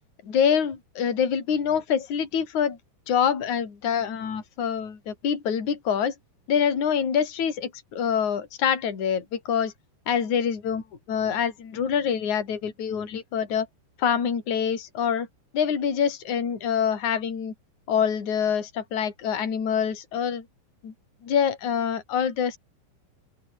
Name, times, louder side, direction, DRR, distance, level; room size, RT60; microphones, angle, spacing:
voice 1, 0.2-2.8 3.1-6.1 6.5-9.7 10.1-13.7 14.0-15.3 15.5-17.5 17.9-20.5 20.8-20.9 21.2-22.6, left 7 dB, 40° left, 5.0 m, -25 dB
open air
omnidirectional pair, 6.0 m